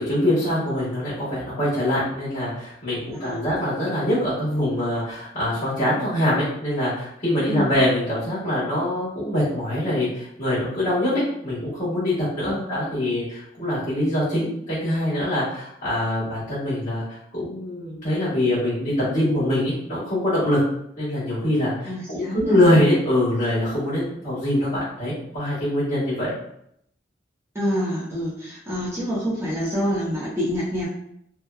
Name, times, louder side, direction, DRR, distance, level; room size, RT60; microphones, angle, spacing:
voice 1, 0.0-20.6 21.0-26.3, left 1 dB, 40° left, -13 dB, 1.2 m, -24 dB
voice 2, 3.1-3.4 7.5-7.7 12.5-12.6 21.9-22.6 27.5-30.9, equal, 15° right, -8 dB, 0.7 m, -27 dB
2.8 x 2.1 x 2.3 m, 0.73 s
head